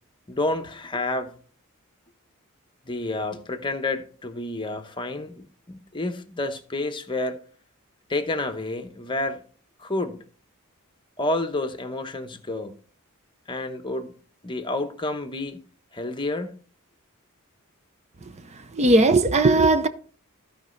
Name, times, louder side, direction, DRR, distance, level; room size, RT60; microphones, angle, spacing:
voice 1, 0.3-1.3 2.8-7.4 8.1-9.4 9.8-10.2 11.2-12.7 13.5-14.1 14.4-15.6 15.9-16.6, left 2 dB, 20° left, 0.9 m, -29 dB
voice 2, 18.8-19.9, right 2 dB, 30° right, 0.6 m, -17 dB
15.0 x 5.1 x 3.2 m
head